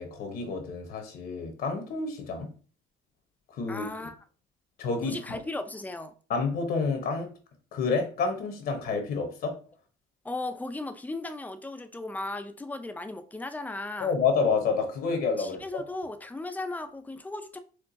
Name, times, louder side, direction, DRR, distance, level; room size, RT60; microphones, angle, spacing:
voice 1, 0.0-2.5 3.5-4.1 4.8-5.2 6.3-7.3 7.7-9.5 14.0-15.8, left 4 dB, 65° left, 0.9 m, -29 dB
voice 2, 3.7-4.2 5.0-6.1 10.2-14.1 15.4-17.6, left 2 dB, 10° left, 0.4 m, -36 dB
4.4 x 2.3 x 2.6 m
cardioid pair, 110°, 17 cm